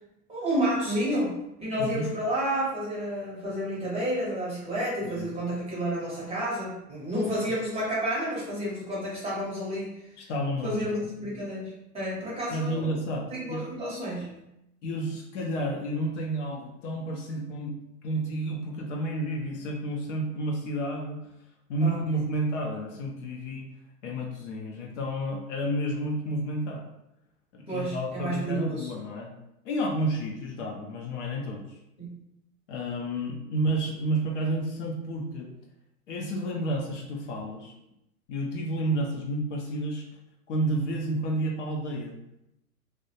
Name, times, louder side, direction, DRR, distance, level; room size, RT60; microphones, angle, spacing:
voice 1, 0.3-10.0 10.6-12.9 13.3-14.4 21.8-22.2 27.7-28.9 32.0-32.2, equal, 15° right, -7 dB, 0.6 m, -30 dB
voice 2, 10.2-11.1 12.5-13.7 14.8-17.7 18.0-21.2 21.7-23.7 24.0-26.8 27.5-29.3 29.6-31.8 32.7-35.5 36.1-37.7 38.3-40.0 40.5-42.2, right 1 dB, 55° left, 1 dB, 0.5 m, -31 dB
2.2 x 2.0 x 2.7 m, 0.83 s
hypercardioid pair, 125°, 46 cm